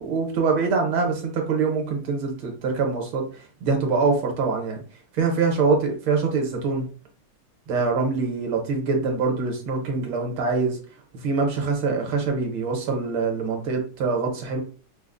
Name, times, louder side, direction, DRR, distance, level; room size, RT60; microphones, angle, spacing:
voice 1, 0.0-4.8 5.1-6.8 7.7-10.8 11.1-14.6, right 4 dB, 70° right, 3 dB, 1.6 m, -24 dB
5.2 x 2.0 x 2.4 m, 0.39 s
omnidirectional pair, 2.3 m